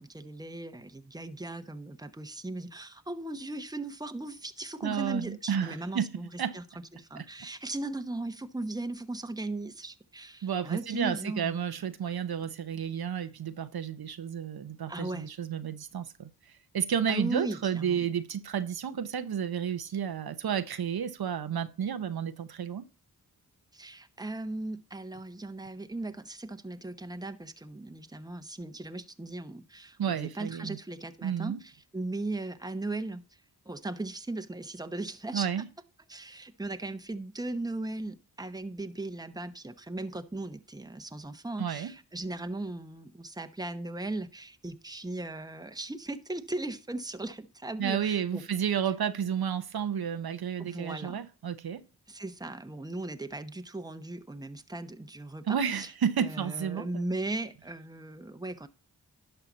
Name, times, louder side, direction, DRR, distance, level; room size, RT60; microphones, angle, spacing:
voice 1, 0.0-6.6 6.9-11.6 14.9-15.3 17.1-18.1 23.7-33.2 33.6-35.5 36.1-48.4 50.6-51.2 52.1-55.9 56.2-58.7, right 2 dB, 10° right, 1.0 m, -37 dB
voice 2, 4.8-6.1 6.4-6.6 7.2-7.3 10.4-22.9 30.0-30.8 31.2-31.6 35.3-35.7 41.6-41.9 47.8-51.8 55.5-57.0, right 8 dB, 70° right, 0.9 m, -31 dB
11.5 x 5.7 x 4.1 m
cardioid pair, 40°, 39 cm